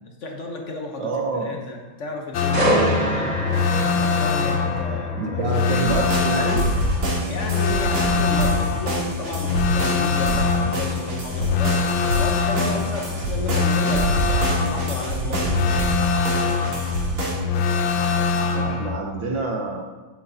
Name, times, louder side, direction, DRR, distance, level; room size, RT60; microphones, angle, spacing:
voice 1, 0.2-3.3 3.9-5.9 7.2-11.8 12.2-15.7, left 2 dB, 55° left, 2 dB, 0.8 m, -33 dB
voice 2, 1.0-1.6 5.1-6.6 18.4-19.8, right 3 dB, 70° right, 1 dB, 1.4 m, -27 dB
sound 1, 2.3-19.0, left 5 dB, 75° left, 1.5 m, -23 dB
sound 2, 2.5-16.4 16.8-17.0, right 1 dB, 35° right, 3.1 m, -30 dB
sound 3, 5.8-17.4, right 2 dB, 90° right, 3.0 m, -27 dB
10.5 x 8.3 x 2.7 m, 1.2 s
omnidirectional pair, 2.3 m